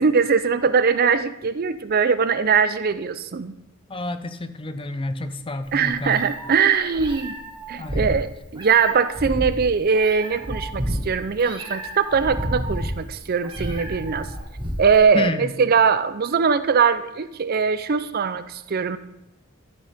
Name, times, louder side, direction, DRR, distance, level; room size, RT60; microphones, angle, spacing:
voice 1, 0.0-3.5 5.7-7.4 7.7-14.3 14.8-19.0, right 5 dB, 45° right, 13 dB, 0.5 m, -21 dB
voice 2, 3.9-6.2 7.8-8.1 15.1-15.5, left 2 dB, 25° left, 10 dB, 0.6 m, -29 dB
Meow, 5.7-15.0, equal, 25° right, 1.6 m, -31 dB
13.5 x 6.5 x 3.5 m, 0.89 s
head